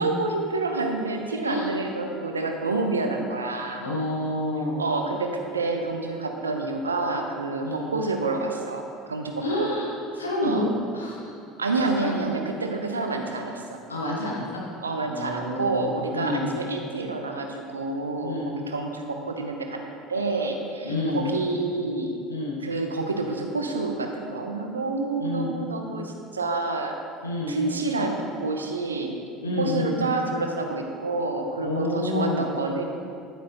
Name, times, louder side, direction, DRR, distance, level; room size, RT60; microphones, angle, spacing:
voice 1, 0.0-3.8 4.8-8.8 9.1-9.7 10.4-10.7 11.6-13.8 14.8-18.4 18.7-22.2 22.6-27.0 27.5-29.2 29.6-32.8, right 3 dB, 85° right, 3 dB, 0.8 m, -28 dB
voice 2, 1.4-1.7 3.8-4.8 7.6-7.9 9.4-11.4 12.0-12.1 13.9-14.6 15.0-15.8 16.1-16.5 18.2-18.5 20.8-21.3 22.3-22.6 25.2-25.5 27.2-27.6 29.4-29.9 31.6-32.5, left 1 dB, 90° left, -4 dB, 1.6 m, -28 dB
10.0 x 9.2 x 2.9 m, 2.4 s
figure-of-eight pair, 65°, 0 cm